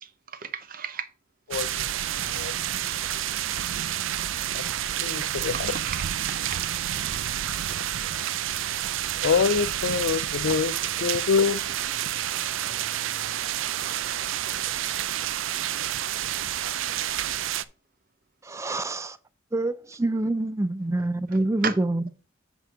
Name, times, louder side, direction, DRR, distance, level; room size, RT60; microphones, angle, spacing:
voice 1, 0.0-1.1 4.5-4.7 5.5-6.6 11.9-12.1 12.3-13.1 21.0-21.1 21.6-21.8, right 6 dB, 45° right, 0.7 m, -36 dB
sound 1, 1.5-17.6, right 11 dB, 75° right, 0.4 m, -29 dB
voice 2, 5.0-5.5 9.2-10.7 11.0-11.6, left 6 dB, 75° left, 0.4 m, -24 dB
voice 3, 18.4-19.2 19.5-22.1, right 2 dB, 15° right, 0.4 m, -26 dB
8.2 x 3.7 x 6.0 m
head